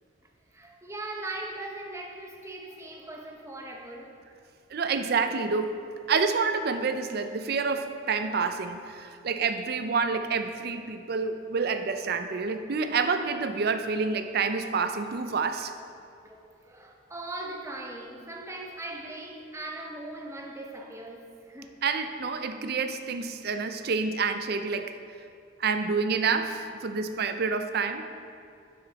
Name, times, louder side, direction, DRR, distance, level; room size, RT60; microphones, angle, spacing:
voice 1, 0.5-4.2 16.2-21.7, right 2 dB, 15° right, 0.8 m, -39 dB
voice 2, 4.7-5.8 6.1-15.7 21.8-24.9 25.6-28.1, right 5 dB, 55° right, 0.5 m, -28 dB
9.8 x 7.0 x 4.0 m
head